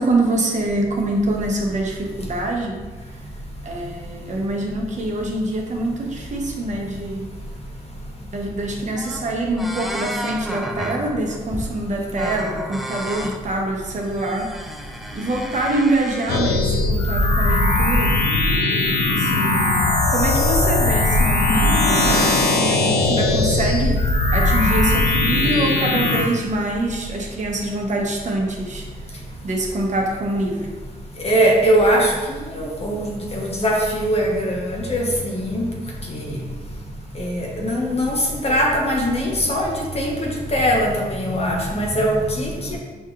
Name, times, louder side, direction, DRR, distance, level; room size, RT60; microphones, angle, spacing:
voice 1, 0.0-2.7 3.6-7.2 8.3-14.5 15.1-18.1 19.1-19.7 20.1-24.0 24.3-28.8 29.4-30.7, right 1 dB, 45° right, 0 dB, 0.8 m, -24 dB
sound 1, 8.6-8.7 9.0-9.3 9.6-11.8 12.2-13.4 14.0-16.4, equal, ahead, 0.3 m, -32 dB
sound 2, 16.3-26.2, left 2 dB, 85° left, 0.6 m, -19 dB
voice 2, 31.2-32.1 32.5-35.0 35.3-35.7 36.1-36.2 37.2-40.1 40.5-42.8, equal, 40° left, -1 dB, 1.0 m, -21 dB
6.2 x 2.8 x 2.4 m, 1.3 s
cardioid pair, 85°, 16 cm